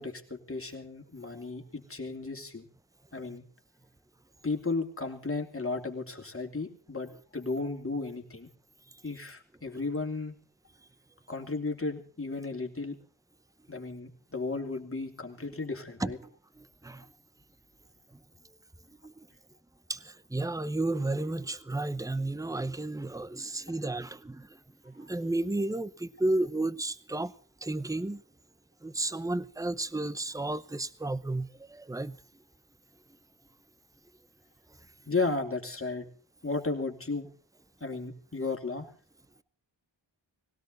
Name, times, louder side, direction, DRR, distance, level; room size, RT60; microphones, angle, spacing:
voice 1, 0.0-2.7 3.1-3.4 4.4-8.5 9.0-10.3 11.3-13.0 13.7-16.2 35.1-36.1 36.4-37.3 37.8-38.9, left 3 dB, 30° left, 2.9 m, -34 dB
voice 2, 16.6-17.0 19.0-19.3 19.9-24.6 24.8-27.3 27.6-28.2 28.8-32.2, right 2 dB, 10° right, 0.8 m, -32 dB
19.5 x 17.5 x 3.9 m
wide cardioid pair, 90°, 45 cm